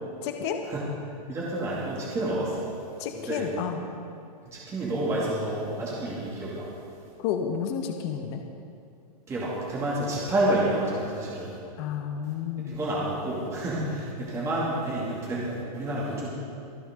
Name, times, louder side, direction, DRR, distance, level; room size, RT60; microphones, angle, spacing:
voice 1, 0.2-0.6 3.0-3.8 7.2-8.4 11.8-12.9, left 8 dB, 40° left, 4 dB, 1.2 m, -31 dB
voice 2, 1.3-2.7 3.1-3.5 4.5-6.7 9.3-11.6 12.7-16.3, right 1 dB, 15° right, -6 dB, 2.6 m, -29 dB
25.5 x 9.6 x 3.8 m, 2.6 s
supercardioid pair, 155°, 20 cm